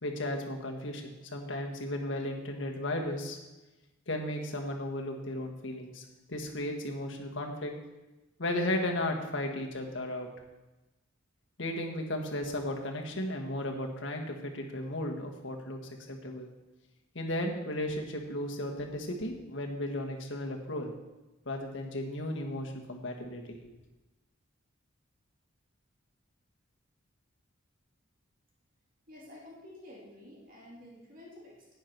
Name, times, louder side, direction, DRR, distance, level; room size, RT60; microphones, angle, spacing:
voice 1, 0.0-3.4 4.1-7.7 8.4-10.3 11.6-15.8 16.1-16.5 17.1-20.9 21.4-23.6, left 1 dB, 60° left, 2 dB, 1.5 m, -35 dB
voice 2, 29.1-31.7, left 1 dB, 45° right, -3 dB, 2.5 m, -50 dB
10.5 x 9.4 x 4.6 m, 1.1 s
head